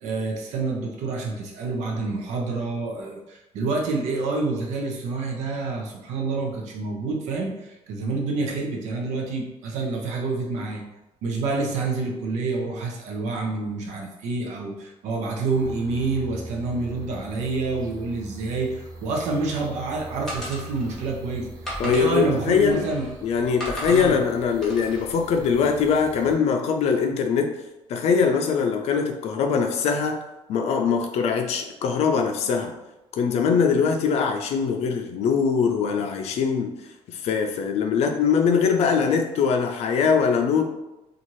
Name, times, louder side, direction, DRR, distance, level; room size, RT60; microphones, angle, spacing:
voice 1, 0.0-10.8 11.2-21.5 21.8-23.1 23.4-23.5 23.9-24.2, right 3 dB, 90° right, 1 dB, 0.6 m, -28 dB
sound 1, 15.5-26.4, right 1 dB, 30° right, 0.5 m, -42 dB
sound 2, 20.3-21.1 21.6-23.1 23.6-24.2 24.6-25.0, equal, 5° left, 1.0 m, -35 dB
voice 2, 21.8-22.8 23.2-27.5 27.9-30.2 30.5-32.7 33.1-36.7 37.1-40.6, left 6 dB, 65° left, 4 dB, 0.4 m, -22 dB
2.7 x 2.4 x 3.0 m, 0.95 s
cardioid pair, 120°, 12 cm